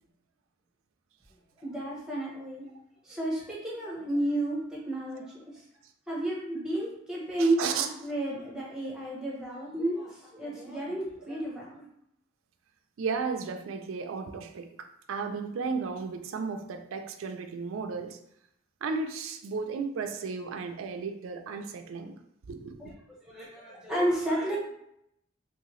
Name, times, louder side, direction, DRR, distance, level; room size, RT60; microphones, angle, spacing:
voice 1, 1.6-2.7 3.0-5.3 6.1-11.8 22.8-22.9 23.3-24.6, right 1 dB, 5° right, -6 dB, 0.8 m, -31 dB
voice 2, 7.4-7.9 13.0-18.2 18.8-22.2 22.5-22.9, right 5 dB, 85° right, 6 dB, 0.4 m, -34 dB
3.0 x 2.7 x 3.0 m, 0.76 s
head